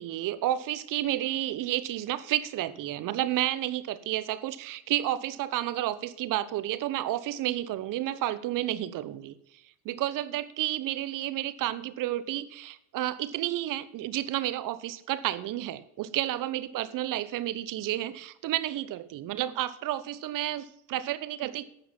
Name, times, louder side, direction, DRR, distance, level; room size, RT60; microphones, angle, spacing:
voice 1, 0.0-9.3 9.8-21.7, right 13 dB, 45° right, 16 dB, 1.0 m, -31 dB
11.5 x 7.8 x 5.9 m, 0.76 s
supercardioid pair, 115°, 46 cm